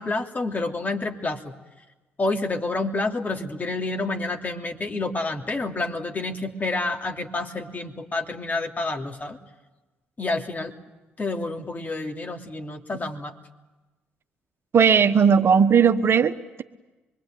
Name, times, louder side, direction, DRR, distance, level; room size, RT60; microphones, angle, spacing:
voice 1, 0.0-1.4 2.2-9.4 10.2-10.7 11.2-13.3, left 2 dB, 30° left, 3 dB, 3.0 m, -28 dB
voice 2, 14.7-16.6, right 6 dB, 50° right, 9 dB, 1.2 m, -18 dB
25.5 x 22.5 x 9.0 m, 1.1 s
hypercardioid pair, 45°, 5 cm